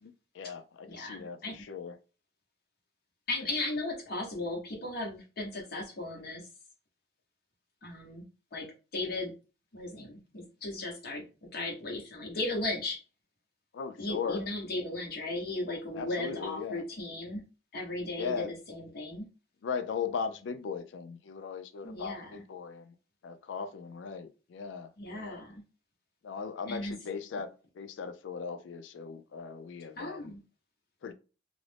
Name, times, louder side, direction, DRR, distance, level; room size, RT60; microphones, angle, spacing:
voice 1, 0.0-2.0 13.7-14.5 15.9-16.8 18.2-18.5 19.6-22.9 23.2-25.4 26.2-30.3 31.0-31.1, left 6 dB, 85° left, 0.4 m, -38 dB
voice 2, 0.9-1.6 3.3-6.5 7.8-8.2 8.5-8.7 8.9-9.3 9.7-11.2 11.5-13.0 14.0-17.4 17.7-19.3 21.8-22.4 25.0-25.6 26.7-26.9 30.0-30.4, left 2 dB, 55° left, 0.8 m, -36 dB
2.5 x 2.0 x 3.2 m
head